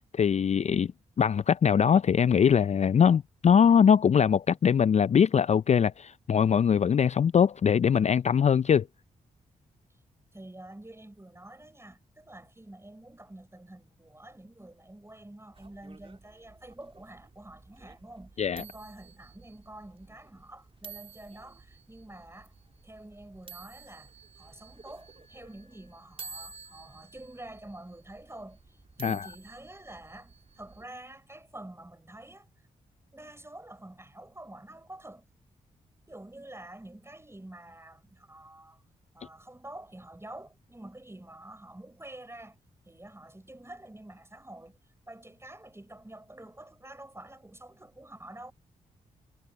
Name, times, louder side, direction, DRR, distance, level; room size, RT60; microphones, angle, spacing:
voice 1, 0.1-0.9 1.2-8.9 18.4-18.6 29.0-29.2, left 7 dB, 45° left, 0.4 m, -22 dB
voice 2, 10.3-22.5 22.8-32.5 33.1-35.3 36.1-38.8 39.1-42.6 42.9-44.8 45.1-48.5, right 1 dB, 15° right, 6.1 m, -48 dB
sound 1, 15.5-30.9, right 5 dB, 35° right, 2.6 m, -51 dB
hypercardioid pair, 40°, 16 cm